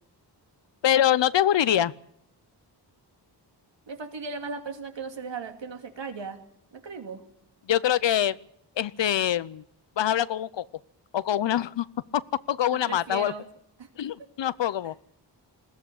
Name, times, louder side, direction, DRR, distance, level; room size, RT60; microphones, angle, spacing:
voice 1, 0.8-1.9 7.7-8.4 8.8-9.6 10.0-10.6 11.1-11.9 12.1-13.3 14.0-14.9, left 11 dB, 75° left, 18 dB, 0.7 m, -24 dB
voice 2, 3.9-6.4 6.7-7.2 12.7-13.4 13.8-13.9 14.8-14.9, right 4 dB, 80° right, 6 dB, 2.6 m, -37 dB
20.5 x 15.0 x 8.6 m, 0.72 s
wide cardioid pair, 140°, 43 cm